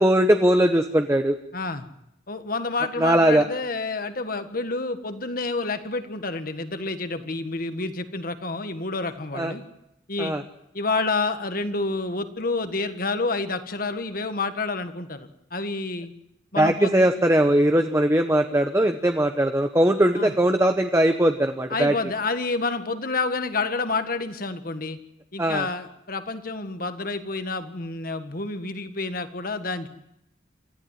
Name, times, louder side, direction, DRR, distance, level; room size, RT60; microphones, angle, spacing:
voice 1, 0.0-1.4 3.0-3.5 9.3-9.5 10.2-10.4 16.6-21.9 25.4-25.7, right 1 dB, 15° right, 6 dB, 1.1 m, -20 dB
voice 2, 1.5-1.8 2.3-9.6 10.1-10.3 10.7-16.1 16.5-17.1 20.1-20.3 21.7-25.0 25.3-29.9, left 3 dB, 50° left, 9 dB, 1.7 m, -29 dB
27.5 x 14.5 x 9.3 m, 0.83 s
head